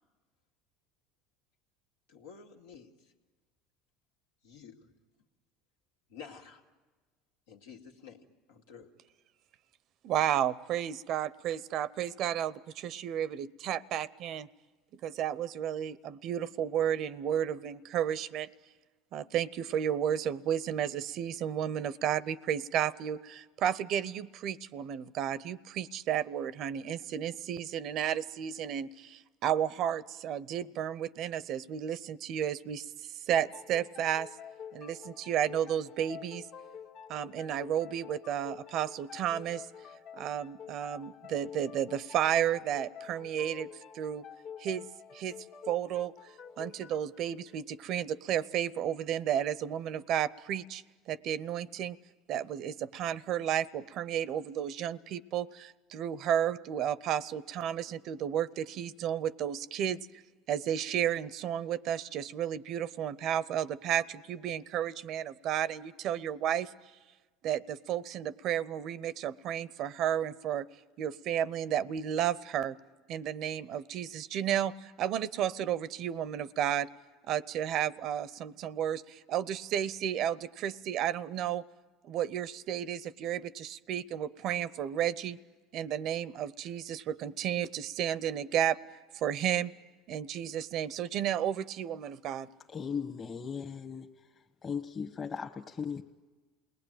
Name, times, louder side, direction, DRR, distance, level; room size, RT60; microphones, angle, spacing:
voice 1, 2.1-2.9 4.4-4.9 6.1-6.6 7.5-8.2 8.5-8.9, left 6 dB, 90° left, 2 dB, 2.1 m, -50 dB
voice 2, 10.0-14.5 15.0-18.5 19.1-32.9 33.3-34.3 34.7-36.4 37.1-39.7 40.1-43.7 43.9-44.2 44.6-44.8 45.1-45.4 45.7-46.1 46.6-52.0 52.3-60.0 60.5-66.7 67.4-70.7 71.0-72.8 73.1-76.9 77.3-81.6 82.0-85.4 85.7-88.8 89.1-89.7 90.1-92.5, right 10 dB, 60° right, 18 dB, 0.7 m, -32 dB
sound 1, 33.3-48.6, left 7 dB, 65° left, 1.8 m, -49 dB
voice 3, 92.7-94.1 94.6-96.0, left 6 dB, 30° left, 3 dB, 1.3 m, -37 dB
28.5 x 19.5 x 9.0 m, 1.4 s
supercardioid pair, 90°, 0 cm